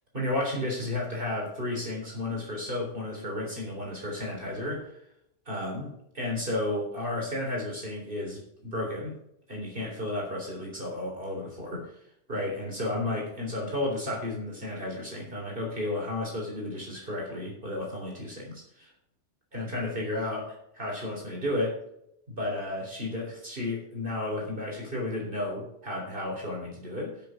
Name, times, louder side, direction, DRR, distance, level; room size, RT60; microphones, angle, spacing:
voice 1, 0.1-4.9 5.5-9.1 9.5-11.8 12.3-18.9 19.5-21.7 22.3-27.2, left 1 dB, 50° right, -2 dB, 4.0 m, -33 dB
15.0 x 6.8 x 5.1 m, 0.76 s
omnidirectional pair, 1.2 m